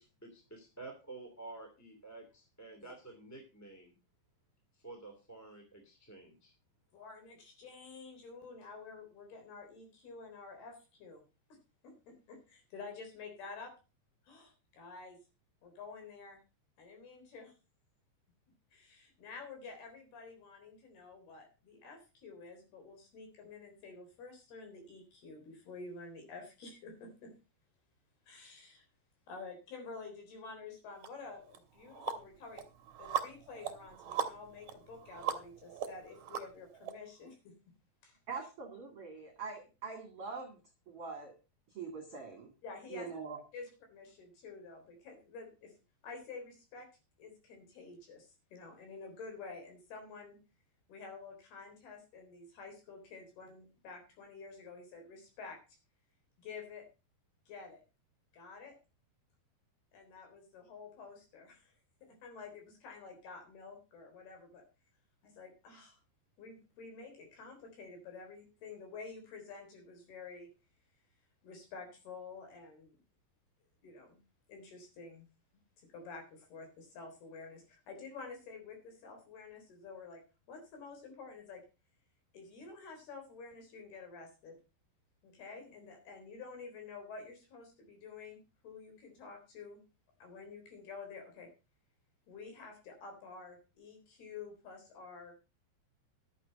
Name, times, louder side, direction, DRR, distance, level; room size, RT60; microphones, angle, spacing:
voice 1, 0.0-4.0 4.8-6.5, right 3 dB, 5° left, 2 dB, 1.9 m, -50 dB
voice 2, 6.9-11.2 11.5-11.6 11.8-13.7 14.2-15.2 15.6-16.4 16.8-17.5 18.7-27.3 28.3-28.8 29.3-32.6 33.0-37.5 38.0-38.2 42.6-43.1 43.5-45.7 46.0-46.9 47.2-50.4 50.9-55.8 56.4-56.9 57.5-57.8 58.3-58.8 59.9-61.7 62.0-64.6 65.2-66.0 66.4-70.5 71.4-73.0 73.8-74.2 74.5-75.3 75.8-80.2 80.5-81.6 82.3-84.6 85.2-89.8 90.2-91.5 92.3-95.3, left 4 dB, 65° left, 4 dB, 5.7 m, -50 dB
sound 1, 31.0-31.1 31.5-36.9, right 8 dB, 60° right, 2.1 m, -39 dB
voice 3, 38.3-40.6 40.9-41.3 41.7-42.5 42.9-43.4, right 5 dB, 40° right, 3 dB, 2.6 m, -43 dB
12.0 x 8.6 x 5.3 m, 0.31 s
omnidirectional pair, 4.9 m